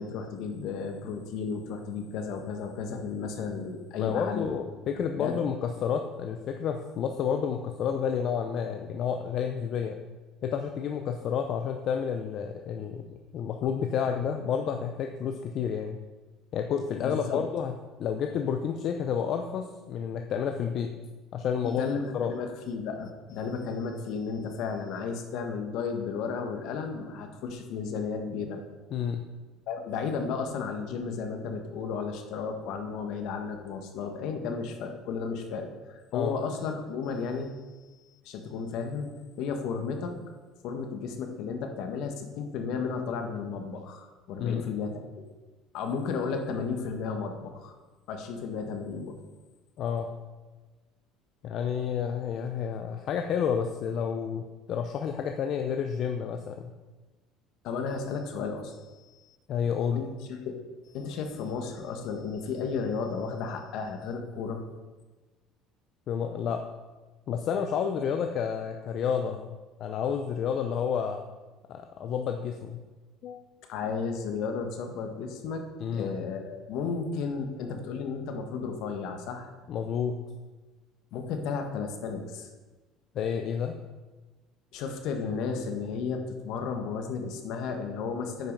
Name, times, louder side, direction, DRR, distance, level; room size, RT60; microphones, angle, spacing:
voice 1, 0.0-4.5 4.9-5.4 17.0-17.4 21.6-28.6 29.7-37.5 38.2-39.1 39.4-40.2 40.6-45.3 45.7-47.7 48.1-49.2 57.6-59.4 59.9-60.6 60.9-64.6 73.7-75.6 75.9-79.5 81.1-82.5 84.7-88.5, left 5 dB, 65° left, 5 dB, 1.3 m, -33 dB
voice 2, 4.0-10.0 10.4-13.0 13.3-16.0 16.5-17.7 18.0-20.9 21.3-21.9 22.1-22.3 28.9-29.3 36.1-36.4 44.4-44.7 49.8-50.1 51.4-56.7 59.5-60.0 66.1-66.6 67.3-71.2 71.7-72.8 73.2-73.4 75.8-76.1 79.7-80.2 83.1-83.7, left 7 dB, 50° left, 5 dB, 0.6 m, -30 dB
9.1 x 5.6 x 5.4 m, 1.2 s
cardioid pair, 135°, 0 cm